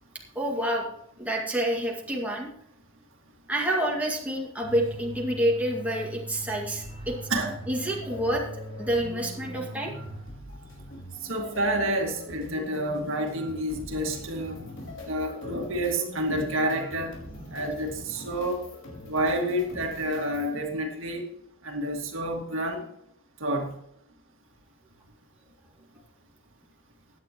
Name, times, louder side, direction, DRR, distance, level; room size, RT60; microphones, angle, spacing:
voice 1, 0.4-0.9 1.2-2.5 3.5-7.2 7.7-8.4 8.8-9.9, right 1 dB, 5° right, -2 dB, 2.1 m, -28 dB
sound 1, 4.6-10.8, equal, 25° right, 1.6 m, -41 dB
sound 2, 6.8-20.5, left 1 dB, 65° left, 4.3 m, -43 dB
voice 2, 11.2-14.6 15.1-17.1 17.5-18.6 19.1-21.2 21.6-22.8 23.4-23.7, right 1 dB, 65° right, 2 dB, 2.1 m, -29 dB
16.0 x 10.0 x 3.0 m, 0.72 s
head